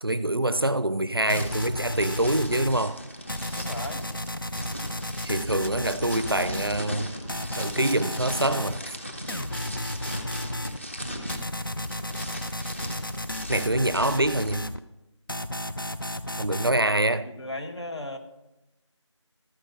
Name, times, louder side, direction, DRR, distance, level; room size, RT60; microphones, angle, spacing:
voice 1, 0.0-3.0 5.2-7.1 7.6-8.9 13.5-14.7 16.4-17.3, right 1 dB, 50° right, 0.5 m, -25 dB
sound 1, 1.2-14.6, equal, 25° left, 1.0 m, -38 dB
sound 2, 1.3-2.8 3.3-6.8 7.3-8.8 9.3-10.8 11.3-14.8 15.3-16.8, left 1 dB, 45° left, 0.5 m, -33 dB
voice 2, 3.6-4.0 17.2-18.2, left 1 dB, 60° left, 1.5 m, -36 dB
13.5 x 6.3 x 5.4 m
figure-of-eight pair, 175°, 16 cm